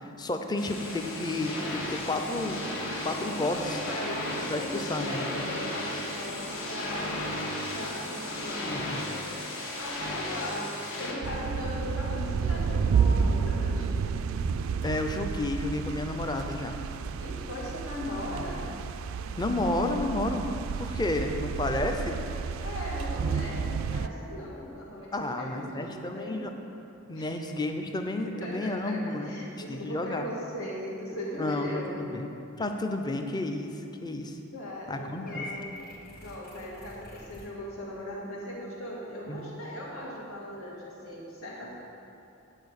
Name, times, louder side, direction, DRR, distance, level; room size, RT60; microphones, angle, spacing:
voice 1, 0.2-2.6 3.0-3.6 4.5-5.3 8.6-9.0 14.8-16.7 18.3-18.4 19.4-20.5 20.8-22.2 25.1-26.5 27.1-29.3 29.7-30.2 31.4-31.7 32.0-32.3 32.6-33.7 34.0-34.4 34.9-35.5 39.3-39.5, left 2 dB, 20° left, 5 dB, 0.5 m, -31 dB
sound 1, 0.6-11.1, left 1 dB, 70° left, 1.5 m, -35 dB
voice 2, 3.0-9.2 9.8-14.1 17.2-18.7 19.2-19.4 22.6-26.4 27.1-27.3 28.2-32.1 34.5-35.7 36.2-41.7, left 1 dB, 85° left, -4 dB, 1.8 m, -38 dB
sound 2, 11.2-24.1, right 5 dB, 70° right, 0.3 m, -30 dB
Purr / Meow, 35.3-37.5, left 2 dB, 45° left, 1.5 m, -44 dB
9.0 x 4.8 x 6.4 m, 2.8 s
head